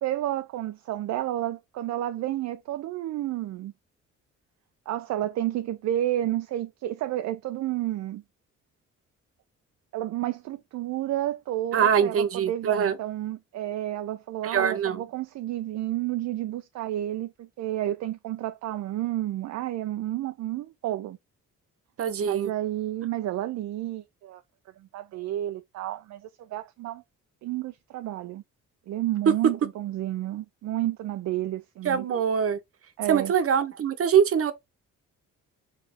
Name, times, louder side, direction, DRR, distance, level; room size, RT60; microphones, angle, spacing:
voice 1, 0.0-3.7 4.9-8.2 9.9-21.2 22.2-24.4 24.8-27.0 27.4-28.4 28.9-32.0 33.0-33.3, right 13 dB, 65° right, 0.5 m, -31 dB
voice 2, 11.7-13.0 14.4-15.0 22.0-22.5 29.3-29.4 31.8-32.6 33.1-34.5, right 7 dB, 50° right, 0.9 m, -23 dB
4.1 x 3.2 x 2.8 m
cardioid pair, 90°, 30 cm